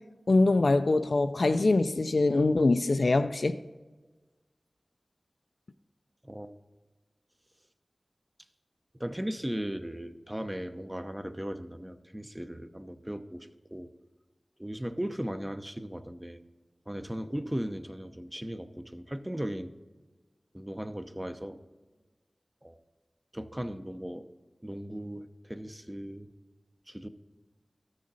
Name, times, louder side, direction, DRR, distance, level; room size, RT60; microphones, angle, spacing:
voice 1, 0.3-3.6, left 2 dB, 70° left, 0.4 m, -23 dB
voice 2, 6.2-6.6 9.0-13.9 14.6-16.4 16.9-19.7 20.5-21.6 22.6-22.8 23.3-24.3 24.6-26.3 26.9-27.1, equal, 15° right, 0.7 m, -37 dB
13.5 x 6.4 x 4.0 m
wide cardioid pair, 45°, 0 cm